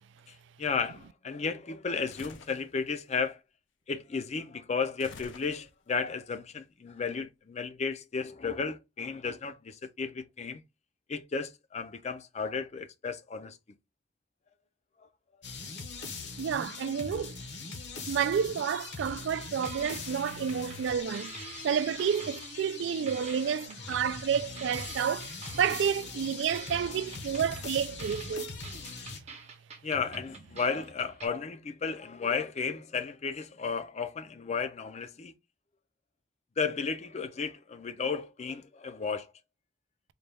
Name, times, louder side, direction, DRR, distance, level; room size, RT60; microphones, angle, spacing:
voice 1, 0.3-3.4 3.9-10.6 11.1-13.6 23.9-24.0 26.9-27.0 29.8-35.3 36.6-39.3, left 5 dB, 35° left, 0.4 m, -34 dB
sound 1, 2.1-2.7 5.0-5.9, left 4 dB, 90° left, 0.6 m, -49 dB
sound 2, 15.4-29.2, left 4 dB, 65° left, 1.0 m, -42 dB
voice 2, 16.4-17.4 18.1-21.3 21.6-25.3 25.5-28.5, right 7 dB, 70° right, 0.3 m, -30 dB
sound 3, 19.0-19.4 19.6-22.8 23.1-26.2 26.5-31.3, right 4 dB, 35° right, 0.7 m, -47 dB
4.1 x 2.2 x 3.3 m
head